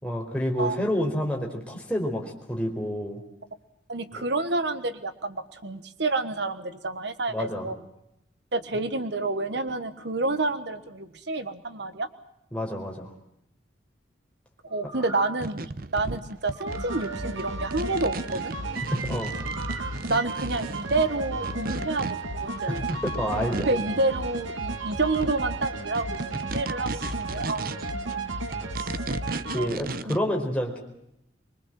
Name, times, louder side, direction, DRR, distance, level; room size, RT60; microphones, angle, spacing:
voice 1, 0.0-3.2 4.1-4.2 7.3-7.7 12.5-13.1 18.9-19.3 22.7-22.8 23.0-24.0 29.5-30.8, equal, 5° left, 0 dB, 4.6 m, -29 dB
voice 2, 3.9-7.8 8.5-12.1 14.6-15.6 15.9-18.5 20.1-22.8 23.7-27.7 29.6-29.8 30.0-30.2, right 2 dB, 65° right, 11 dB, 1.4 m, -29 dB
sound 1, 14.7-15.5 16.5-17.2 19.3-20.0 20.4-20.5, right 3 dB, 20° right, 2.9 m, -42 dB
sound 2, 15.4-23.9 24.2-24.7 25.0-28.1 28.5-30.2, right 3 dB, 50° right, 0.8 m, -36 dB
sound 3, 16.7-29.7, right 2 dB, 90° right, 2.5 m, -33 dB
25.0 x 23.0 x 7.6 m, 0.81 s
head